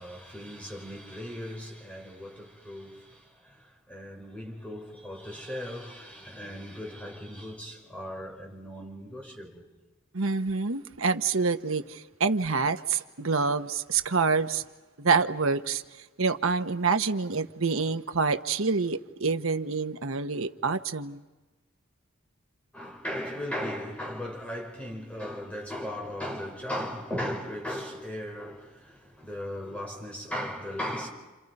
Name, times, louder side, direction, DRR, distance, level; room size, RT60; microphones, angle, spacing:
voice 1, 0.0-9.7 22.7-31.1, equal, 5° left, 5.6 m, -37 dB
voice 2, 10.1-14.6 15.0-15.8 16.2-21.2, right 4 dB, 80° right, 1.1 m, -27 dB
30.0 x 27.5 x 5.4 m
head